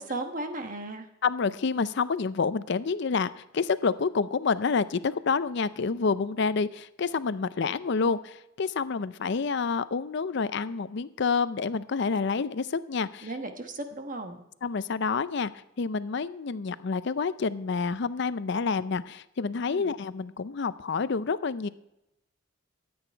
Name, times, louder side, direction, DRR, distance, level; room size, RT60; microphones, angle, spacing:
voice 1, 0.0-1.1 13.2-14.4 19.7-19.9, right 2 dB, 40° right, 6 dB, 1.2 m, -35 dB
voice 2, 1.2-13.3 14.6-15.5 15.8-21.7, left 5 dB, 60° left, 15 dB, 0.5 m, -28 dB
14.0 x 8.8 x 4.5 m, 0.89 s
head